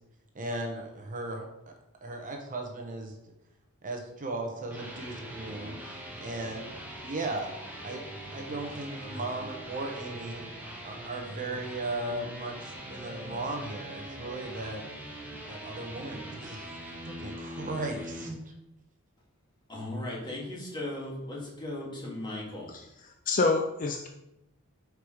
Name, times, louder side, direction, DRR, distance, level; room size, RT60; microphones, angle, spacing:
voice 1, 0.3-1.5 2.0-3.1 3.8-6.7 7.0-7.5 7.8-8.0 8.3-10.5 10.8-14.8 15.5-16.7 17.0-18.3, right 2 dB, 40° right, 3 dB, 0.8 m, -37 dB
sound 1, 4.5-18.4, right 1 dB, 10° right, 0.9 m, -42 dB
voice 2, 19.7-22.7, left 1 dB, 20° left, -4 dB, 1.8 m, -37 dB
voice 3, 22.7-24.1, left 3 dB, 40° left, 3 dB, 0.5 m, -28 dB
4.9 x 4.7 x 4.8 m, 0.88 s
head